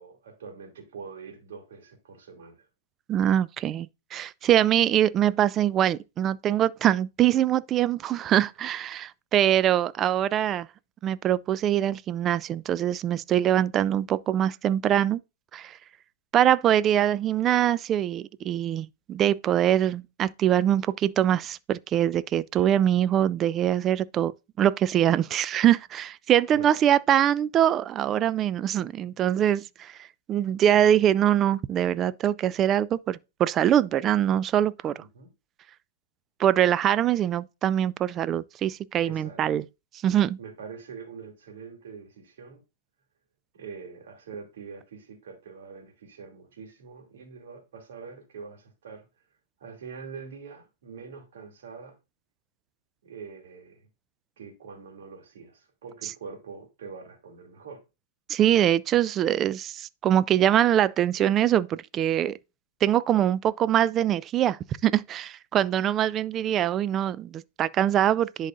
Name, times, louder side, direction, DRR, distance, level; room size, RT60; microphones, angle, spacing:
voice 1, 0.0-2.7 26.5-26.8 35.0-35.3 39.0-39.4 40.4-42.6 43.5-49.1 49.6-52.0 53.0-53.9 54.4-57.8, right 5 dB, 70° right, 2.5 m, -44 dB
voice 2, 3.1-10.7 11.0-15.2 15.5-15.8 16.3-24.3 24.6-30.0 30.3-35.0 36.4-39.6 40.0-40.4 58.3-62.4 62.8-68.5, right 11 dB, 30° right, 0.4 m, -23 dB
10.5 x 4.0 x 2.5 m
hypercardioid pair, 120°, 0 cm